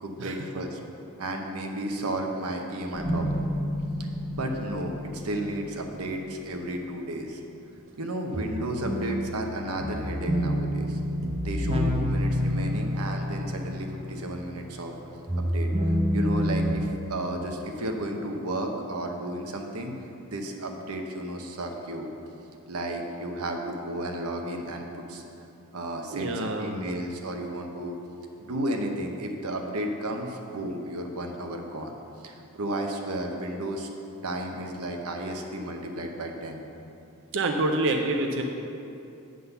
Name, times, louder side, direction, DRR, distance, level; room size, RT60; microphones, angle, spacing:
voice 1, 0.0-0.8 1.2-3.4 4.3-7.4 8.0-11.0 11.4-14.9 15.4-15.7 16.1-19.9 20.3-22.1 22.7-25.2 25.7-28.0 28.4-31.9 32.2-33.9 34.2-36.7, right 1 dB, 80° right, 3 dB, 0.9 m, -33 dB
sound 1, 2.9-6.3 8.3-14.9 15.3-16.7, equal, 25° right, 0.8 m, -29 dB
voice 2, 26.1-26.8 37.3-38.4, right 2 dB, 55° right, 3 dB, 0.5 m, -27 dB
9.6 x 3.8 x 6.8 m, 2.8 s
head